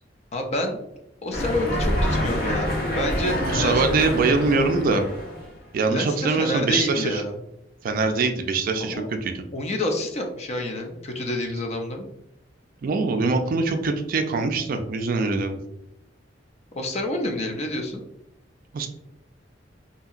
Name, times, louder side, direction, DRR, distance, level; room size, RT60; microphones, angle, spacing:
voice 1, 0.3-0.9 1.2-3.9 5.9-7.3 8.8-9.1 9.5-12.1 16.7-18.0, left 1 dB, 35° left, 3 dB, 0.4 m, -28 dB
sound 1, 1.3-5.6, equal, 55° left, 0.8 m, -26 dB
voice 2, 3.5-5.1 5.7-7.2 7.8-9.4 12.8-15.6 18.7-18.9, right 4 dB, 50° right, 6 dB, 0.3 m, -23 dB
2.8 x 2.7 x 2.4 m, 0.82 s
head